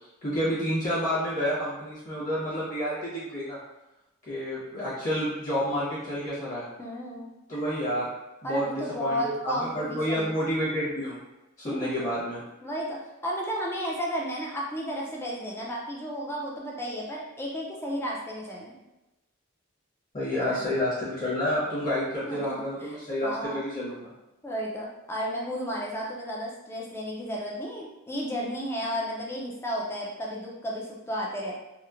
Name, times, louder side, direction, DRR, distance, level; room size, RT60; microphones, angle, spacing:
voice 1, 0.2-3.6 4.3-6.7 7.5-8.1 8.4-11.2 11.6-12.4 20.1-24.1, equal, 35° left, -9 dB, 0.9 m, -29 dB
voice 2, 6.8-7.3 8.4-10.3 11.6-12.1 12.6-18.8 20.4-20.6 22.3-23.0 23.2-23.6 24.4-31.5, equal, 10° left, -3 dB, 0.4 m, -33 dB
2.9 x 2.0 x 2.4 m, 0.97 s
head